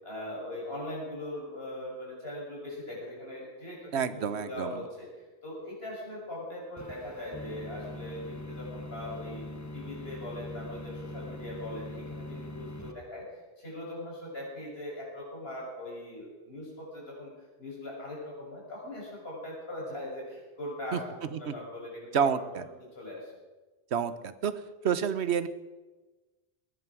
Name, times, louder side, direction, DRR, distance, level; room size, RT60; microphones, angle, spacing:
voice 1, 0.0-9.4 9.7-13.2 13.6-17.3 17.6-22.3 22.9-23.3, left 1 dB, 65° left, -4 dB, 6.7 m, -40 dB
voice 2, 3.9-4.8 20.9-21.0 21.3-21.5 22.1-22.6 23.9-24.5 24.8-25.5, right 7 dB, 85° right, 13 dB, 1.2 m, -29 dB
sound 1, 6.8-12.9, left 1 dB, 15° left, 1.0 m, -42 dB
19.0 x 11.0 x 6.1 m, 1.2 s
omnidirectional pair, 1.1 m